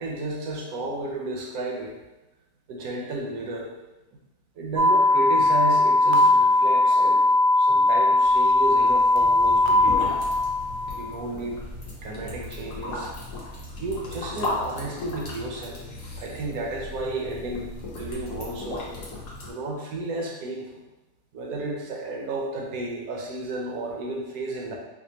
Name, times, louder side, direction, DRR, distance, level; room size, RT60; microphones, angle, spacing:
voice 1, 0.0-1.9 2.7-3.7 4.6-7.2 7.6-10.2 10.9-11.6 12.0-13.1 13.8-15.8 16.2-18.9 19.4-20.8 21.3-24.8, right 2 dB, 70° right, -1 dB, 1.1 m, -32 dB
sound 1, 4.8-11.1, left 2 dB, 85° right, 1.2 m, -19 dB
sound 2, 9.1-19.5, left 2 dB, 75° left, 1.5 m, -36 dB
5.1 x 2.2 x 2.8 m, 1.0 s
omnidirectional pair, 1.7 m